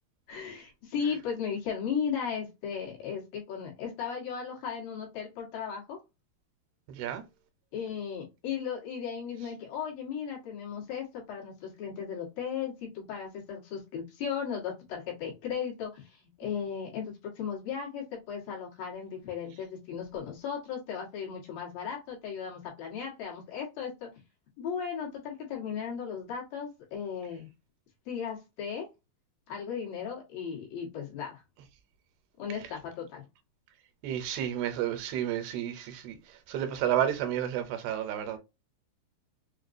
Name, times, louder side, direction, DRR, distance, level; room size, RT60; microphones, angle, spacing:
voice 1, 0.3-6.0 7.7-24.1 24.6-27.5 28.1-28.9 29.5-31.4 32.4-33.2, left 7 dB, 65° left, 3.0 m, -36 dB
voice 2, 6.9-7.2 34.0-36.2 36.5-38.4, right 10 dB, 80° right, 2.5 m, -31 dB
6.5 x 2.2 x 2.5 m
omnidirectional pair, 4.6 m